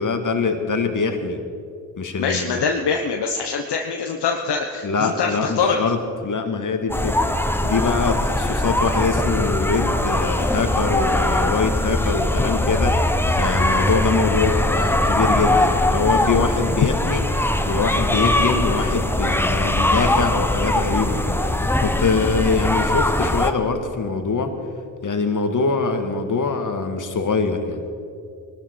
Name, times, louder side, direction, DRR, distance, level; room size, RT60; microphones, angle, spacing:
voice 1, 0.0-1.4 2.0-2.6 4.8-7.2 7.6-13.0 13.4-17.2 17.7-24.5 25.0-27.8, left 4 dB, 40° left, 6 dB, 2.0 m, -23 dB
voice 2, 2.2-5.8, left 5 dB, 55° left, 3 dB, 1.3 m, -23 dB
sound 1, 6.9-23.5, left 1 dB, 5° left, 1.2 m, -21 dB
21.0 x 13.0 x 4.7 m, 2.4 s
hypercardioid pair, 45°, 47 cm